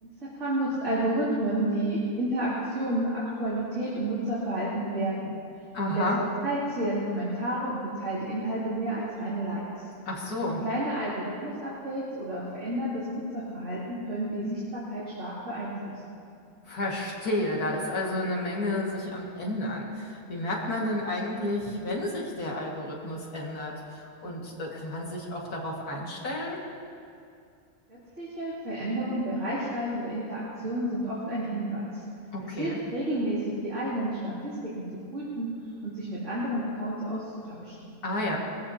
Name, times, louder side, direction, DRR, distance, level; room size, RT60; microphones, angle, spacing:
voice 1, 0.0-5.3 5.9-9.6 10.4-15.7 27.9-32.0 32.4-34.8 35.1-35.5 35.8-37.7, right 1 dB, 55° right, -10 dB, 3.2 m, -31 dB
voice 2, 5.7-6.2 10.1-10.6 16.7-26.6 32.3-32.8 38.0-38.4, left 1 dB, 90° left, -3 dB, 2.6 m, -31 dB
20.5 x 15.0 x 2.9 m, 2.4 s
omnidirectional pair, 1.5 m